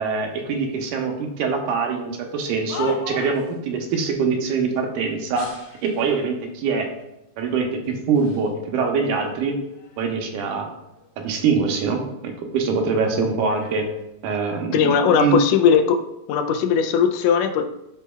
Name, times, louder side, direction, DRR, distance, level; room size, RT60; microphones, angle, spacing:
voice 1, 0.0-5.5 5.8-6.9 7.4-9.6 10.0-10.7 11.2-13.9 14.2-15.4, right 5 dB, 75° right, 2 dB, 2.4 m, -23 dB
sound 1, 2.3-3.6 5.3-6.2 7.0-7.1 7.8-8.5 8.9-10.4 10.8-12.4 12.7-14.8 15.6-15.9, left 5 dB, 50° left, 1.4 m, -41 dB
voice 2, 14.7-16.0 16.3-17.6, left 7 dB, 85° left, 7 dB, 2.2 m, -18 dB
13.0 x 4.5 x 2.3 m, 0.89 s
omnidirectional pair, 3.7 m